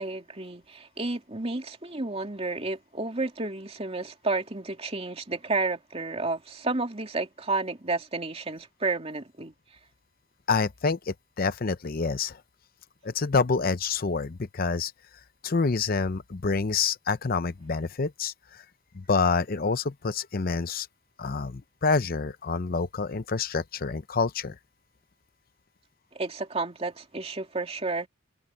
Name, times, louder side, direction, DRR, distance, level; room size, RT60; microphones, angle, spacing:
voice 1, 0.0-9.5 26.1-28.1, right 3 dB, 30° right, 2.6 m, -31 dB
voice 2, 10.5-12.4 13.0-14.9 15.4-18.6 18.9-20.9 21.2-24.6, left 4 dB, 45° left, 0.6 m, -27 dB
head